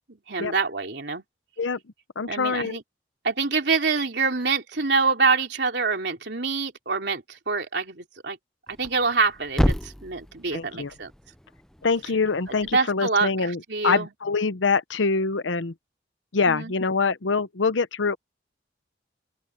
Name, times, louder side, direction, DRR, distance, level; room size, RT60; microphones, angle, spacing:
voice 1, 0.1-1.2 2.3-2.8 3.2-8.4 8.7-11.1 12.7-14.1 16.5-16.7, right 4 dB, 65° right, 3.3 m, -26 dB
voice 2, 2.2-2.8 10.5-10.9 11.8-15.7 16.3-18.2, left 4 dB, 85° left, 0.8 m, -24 dB
Thump thud, 8.7-12.8, equal, 5° left, 0.5 m, -31 dB
open air
head